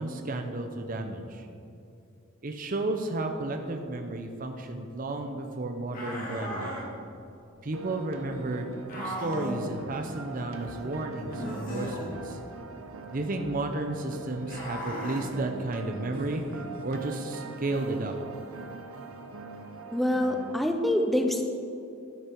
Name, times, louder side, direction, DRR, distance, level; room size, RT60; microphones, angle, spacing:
voice 1, 0.0-1.5 2.4-6.8 7.6-8.7 9.0-12.4 13.1-18.1, right 2 dB, 40° right, 4 dB, 0.6 m, -33 dB
sound 1, 5.9-6.9 8.9-9.6 11.3-12.1 14.4-15.3, equal, 40° left, 2.0 m, -36 dB
sound 2, 7.7-20.5, right 3 dB, 75° right, 0.8 m, -42 dB
voice 2, 19.9-21.4, left 1 dB, ahead, 4 dB, 0.5 m, -25 dB
11.5 x 6.7 x 4.5 m, 2.7 s
head